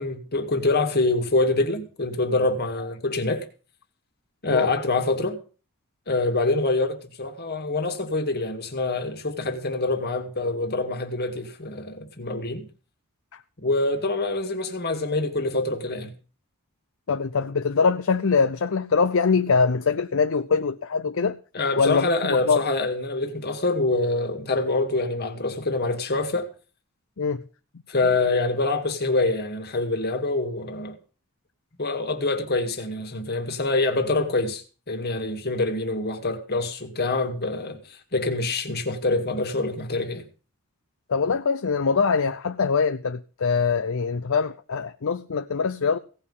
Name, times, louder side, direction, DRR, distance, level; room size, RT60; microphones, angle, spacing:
voice 1, 0.0-3.5 4.4-5.4 6.1-12.7 13.6-16.1 21.5-26.5 27.9-31.0 31.8-40.3, left 2 dB, 45° left, 2.1 m, -25 dB
voice 2, 17.1-21.4 21.8-22.6 27.2-27.4 41.1-46.0, left 5 dB, 65° left, 0.6 m, -23 dB
17.0 x 5.7 x 8.0 m
head